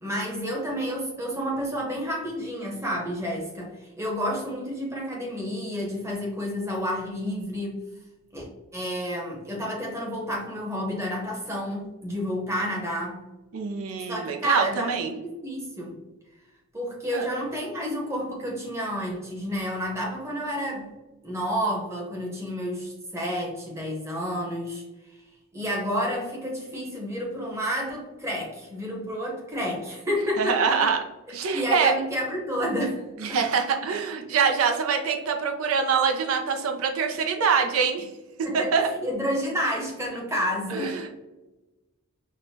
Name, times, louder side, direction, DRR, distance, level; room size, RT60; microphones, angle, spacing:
voice 1, 0.0-7.8 8.3-8.5 8.7-13.2 14.1-15.9 16.7-20.9 21.2-25.2 25.5-30.9 31.5-33.0 33.3-33.4 38.4-41.1, equal, 15° right, -2 dB, 0.8 m, -30 dB
voice 2, 13.5-15.1 17.1-17.3 30.4-31.0 31.3-31.9 33.2-38.1 38.5-38.9 40.7-41.1, right 6 dB, 80° right, 4 dB, 0.5 m, -24 dB
6.1 x 2.1 x 2.7 m, 1.1 s
head